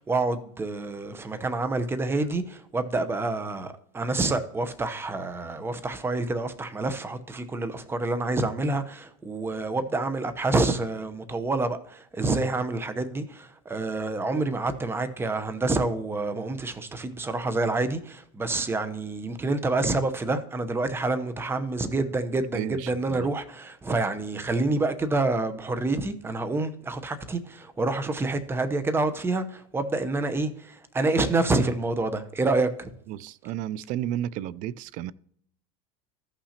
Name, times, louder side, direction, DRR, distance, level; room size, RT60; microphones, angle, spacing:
voice 1, 0.0-32.9, right 2 dB, 15° right, 0.8 m, -27 dB
voice 2, 22.5-23.3 33.1-35.1, right 11 dB, 50° right, 0.4 m, -32 dB
14.0 x 5.9 x 2.9 m
supercardioid pair, 120°, 17 cm